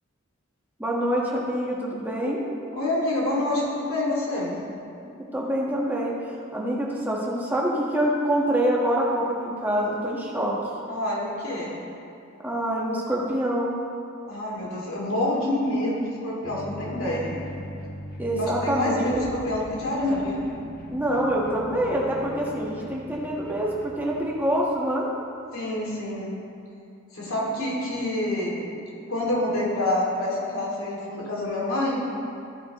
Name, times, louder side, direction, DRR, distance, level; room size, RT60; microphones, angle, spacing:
voice 1, 0.8-2.4 5.0-6.1 6.5-10.5 12.4-13.7 18.2-19.1 20.9-25.1, right 1 dB, 10° right, -4 dB, 1.3 m, -25 dB
voice 2, 2.8-4.6 10.9-11.7 14.3-17.4 18.4-20.4 25.5-26.3 27.1-28.7 29.1-32.0, left 1 dB, 85° left, -4 dB, 2.4 m, -27 dB
sound 1, 16.4-24.7, equal, 40° left, 1.0 m, -40 dB
13.5 x 8.4 x 3.0 m, 2.5 s
head